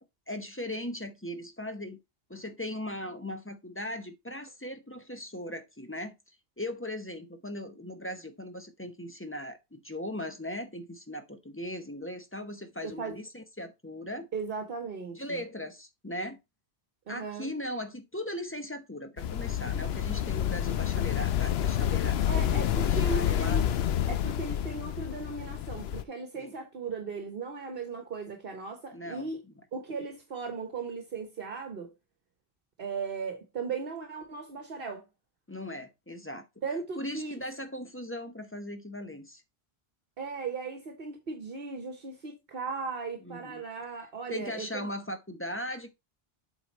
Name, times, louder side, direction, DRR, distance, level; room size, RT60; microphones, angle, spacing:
voice 1, 0.3-2.0 2.3-14.3 15.2-16.4 17.1-23.6 26.3-26.5 28.9-29.3 35.5-36.5 37.0-39.4 43.2-43.6 44.3-45.9, left 1 dB, 15° left, 0.8 m, -39 dB
voice 2, 12.8-13.2 14.3-15.4 17.1-17.5 22.3-23.6 24.1-29.4 29.7-31.9 32.8-35.0 36.6-37.4 40.2-44.9, right 5 dB, 65° right, 1.3 m, -37 dB
sound 1, 19.2-26.0, left 10 dB, 90° left, 0.9 m, -28 dB
7.7 x 4.0 x 4.1 m
omnidirectional pair, 1.0 m